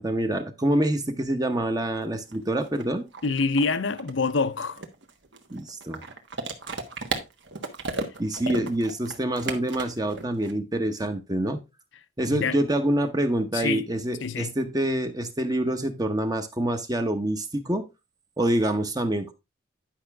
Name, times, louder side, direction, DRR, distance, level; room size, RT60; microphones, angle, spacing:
voice 1, 0.0-3.0 5.5-6.0 8.2-11.6 12.2-17.8 18.4-19.3, right 1 dB, 20° right, 0.9 m, -26 dB
sound 1, 2.0-2.1 2.3-10.5, right 3 dB, 65° right, 1.4 m, -34 dB
voice 2, 3.2-4.8 8.5-8.6 12.3-12.6 13.5-13.8 14.2-14.5, left 4 dB, 75° left, 0.8 m, -26 dB
10.5 x 5.7 x 3.5 m
head